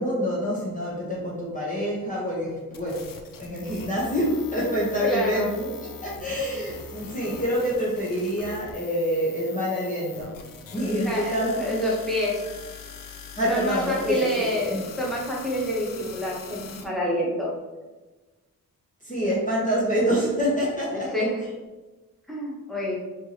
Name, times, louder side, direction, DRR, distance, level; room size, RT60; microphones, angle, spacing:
voice 1, 0.0-3.1 3.4-5.8 6.0-10.4 10.7-11.8 13.4-14.8 19.0-21.3, equal, 25° left, -6 dB, 1.1 m, -26 dB
sound 1, 2.7-16.8, left 5 dB, 70° left, 0.6 m, -42 dB
voice 2, 5.0-5.4 11.0-12.4 13.5-17.5 20.9-21.4 22.3-23.0, equal, ahead, -5 dB, 1.3 m, -28 dB
4.5 x 3.1 x 2.9 m, 1.2 s
cardioid pair, 70°, 34 cm